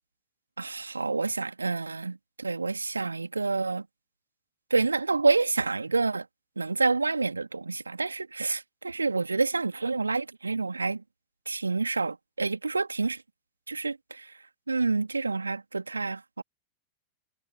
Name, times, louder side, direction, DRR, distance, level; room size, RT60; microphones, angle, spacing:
voice 1, 0.6-3.8 4.7-6.2 6.6-11.0 11.5-13.2 13.7-14.3 14.7-16.4, right 3 dB, 80° right, 3.3 m, -28 dB
figure-of-eight pair, 90°, 0 cm